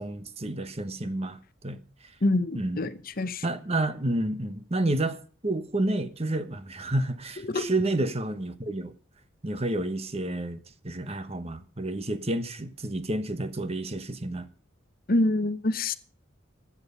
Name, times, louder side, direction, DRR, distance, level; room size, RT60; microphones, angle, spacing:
voice 1, 0.0-1.8 2.5-2.8 3.4-8.9 9.4-10.6 10.8-14.5, right 1 dB, 30° right, 1.2 m, -30 dB
voice 2, 2.2-3.4 7.5-7.7 15.1-16.0, left 2 dB, 45° left, 0.8 m, -26 dB
15.5 x 9.9 x 5.5 m
head